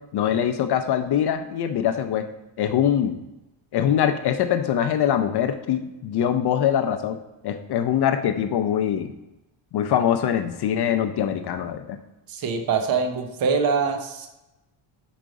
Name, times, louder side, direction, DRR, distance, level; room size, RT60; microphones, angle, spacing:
voice 1, 0.1-2.3 2.6-3.2 3.7-7.2 7.4-9.1 9.7-12.0, left 9 dB, 55° left, 8 dB, 0.6 m, -23 dB
voice 2, 12.3-14.4, right 5 dB, 45° right, 6 dB, 0.8 m, -24 dB
5.1 x 4.7 x 5.0 m, 0.97 s
cardioid pair, 115°, 49 cm